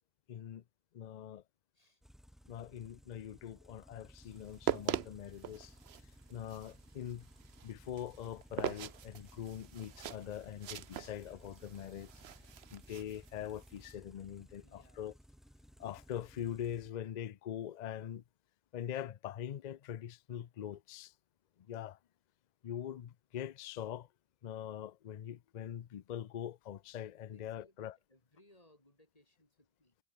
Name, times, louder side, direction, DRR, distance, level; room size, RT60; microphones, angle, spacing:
voice 1, 0.3-0.6 0.9-1.4 2.5-5.7 6.3-7.3 7.6-12.1 12.7-15.1 15.8-18.2 18.7-21.1 21.7-22.0 22.6-24.1 24.4-28.0, left 10 dB, 50° left, 0.6 m, -43 dB
sound 1, 2.0-16.9, equal, ahead, 2.5 m, -59 dB
sound 2, 4.4-13.9, right 10 dB, 70° right, 1.0 m, -42 dB
voice 2, 14.6-15.2 27.3-30.0, left 1 dB, 35° left, 6.0 m, -66 dB
omnidirectional pair, 1.1 m